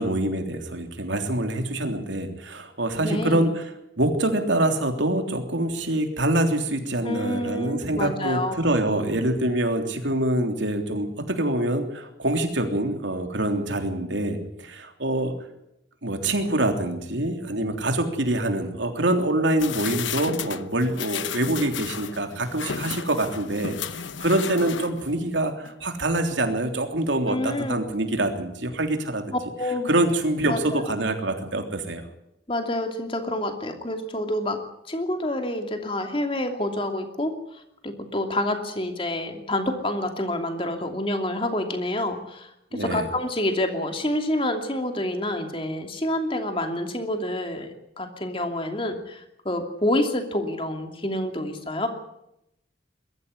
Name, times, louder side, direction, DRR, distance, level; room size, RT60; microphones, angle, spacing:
voice 1, 0.0-3.7 4.0-15.3 16.0-23.7 24.2-29.3 29.8-32.0 42.7-43.1, right 1 dB, 75° right, 5 dB, 3.3 m, -25 dB
voice 2, 3.0-3.5 7.0-8.6 27.3-27.7 29.6-29.9 30.5-30.6 32.5-37.3 37.8-51.9, left 1 dB, 30° left, 5 dB, 2.7 m, -28 dB
sound 1, 19.6-25.2 25.6-25.7, left 7 dB, 80° left, 1.0 m, -34 dB
21.5 x 14.0 x 9.8 m, 0.82 s
head